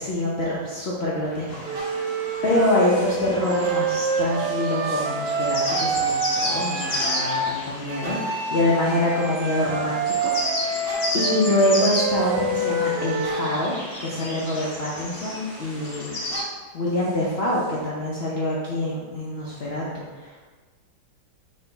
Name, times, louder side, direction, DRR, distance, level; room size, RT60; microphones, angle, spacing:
voice 1, 0.0-1.9 2.4-10.3 10.6-16.3 16.7-20.5, left 1 dB, 70° left, -6 dB, 0.6 m, -25 dB
sound 1, 1.2-3.3 3.6-10.4 10.8-16.0 16.3-17.8, right 1 dB, 55° right, 1.7 m, -43 dB
sound 2, 1.5-16.4, left 1 dB, 45° left, 0.9 m, -33 dB
Wind instrument woodwind instrument, 1.6-7.5 7.9-13.5, right 3 dB, 85° right, 1.3 m, -27 dB
4.3 x 3.1 x 3.9 m, 1.4 s
omnidirectional pair, 2.0 m